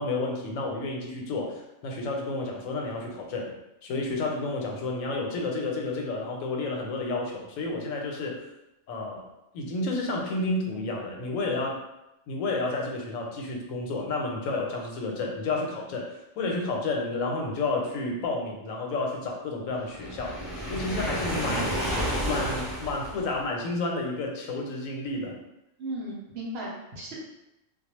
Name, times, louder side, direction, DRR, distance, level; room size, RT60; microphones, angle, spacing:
voice 1, 0.0-3.5 3.8-8.5 8.9-9.3 9.5-11.8 12.3-20.4 20.7-21.8 22.2-25.4, left 2 dB, 90° left, 0 dB, 1.0 m, -31 dB
Waves surf, 19.9-23.4, equal, ahead, 0.5 m, -31 dB
voice 2, 25.8-27.2, right 1 dB, 60° right, -4 dB, 0.8 m, -36 dB
2.2 x 2.0 x 2.9 m, 0.89 s
omnidirectional pair, 1.3 m